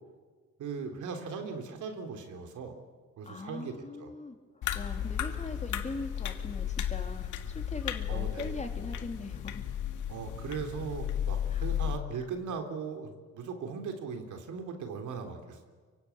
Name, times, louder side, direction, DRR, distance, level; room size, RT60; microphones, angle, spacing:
voice 1, 0.6-2.8 3.2-3.7 4.0-4.1 8.1-8.5 10.1-15.7, right 5 dB, 75° right, 5 dB, 3.6 m, -38 dB
voice 2, 3.2-9.6 11.5-11.7, left 3 dB, 25° left, 5 dB, 3.2 m, -41 dB
sound 1, 4.6-12.0, left 10 dB, 80° left, 1.8 m, -34 dB
24.0 x 24.0 x 8.6 m, 1.5 s
cardioid pair, 90°, 30 cm